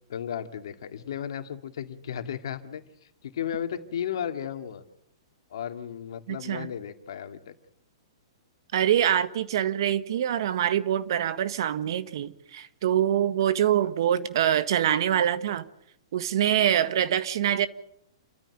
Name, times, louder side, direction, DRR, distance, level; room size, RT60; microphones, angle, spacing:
voice 1, 0.1-2.8 3.2-4.8 5.5-7.5, left 9 dB, 65° left, 2.3 m, -34 dB
voice 2, 6.3-6.7 8.7-15.6 16.1-17.7, right 10 dB, 60° right, 1.6 m, -25 dB
28.5 x 14.0 x 9.3 m
hypercardioid pair, 120°, 3 cm